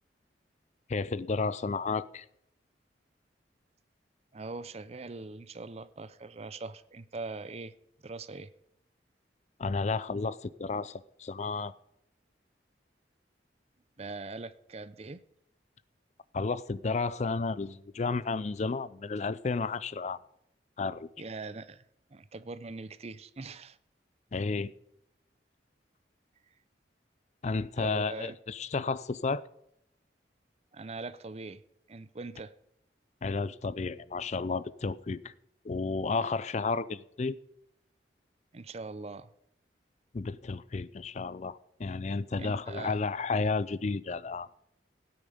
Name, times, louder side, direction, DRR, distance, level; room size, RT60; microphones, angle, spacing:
voice 1, 0.9-2.2 9.6-11.7 16.3-20.2 20.8-21.1 24.3-24.7 27.4-29.4 33.2-35.3 35.6-37.4 40.1-44.5, left 4 dB, 40° left, 0.4 m, -32 dB
voice 2, 4.3-7.7 8.0-8.5 14.0-15.2 21.2-21.8 22.1-23.8 27.8-28.4 30.7-31.6 31.9-32.5 38.5-39.3 42.4-43.0, right 3 dB, 35° right, 0.6 m, -41 dB
16.5 x 8.9 x 5.0 m
head